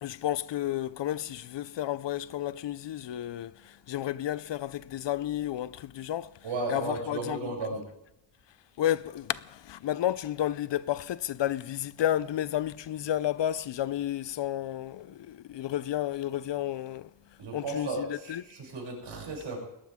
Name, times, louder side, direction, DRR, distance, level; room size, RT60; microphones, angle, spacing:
voice 1, 0.0-6.4 6.7-7.4 8.8-17.1 17.5-18.4, left 12 dB, 70° left, 0.6 m, -31 dB
voice 2, 6.4-7.8 17.4-19.6, right 2 dB, 80° right, 7.3 m, -34 dB
21.0 x 18.0 x 3.7 m
wide cardioid pair, 170°, 46 cm